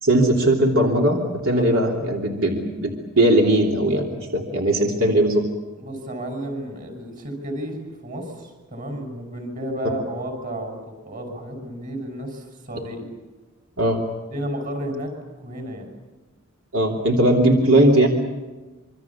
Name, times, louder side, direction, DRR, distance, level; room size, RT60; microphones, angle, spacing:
voice 1, 0.0-5.4 13.8-14.0 16.7-18.1, right 1 dB, 75° right, 0 dB, 3.0 m, -19 dB
voice 2, 1.5-1.9 5.8-10.8 11.1-13.1 14.3-15.1 15.4-15.9, right 1 dB, 40° right, 5 dB, 5.9 m, -32 dB
26.5 x 24.5 x 7.2 m, 1.2 s
head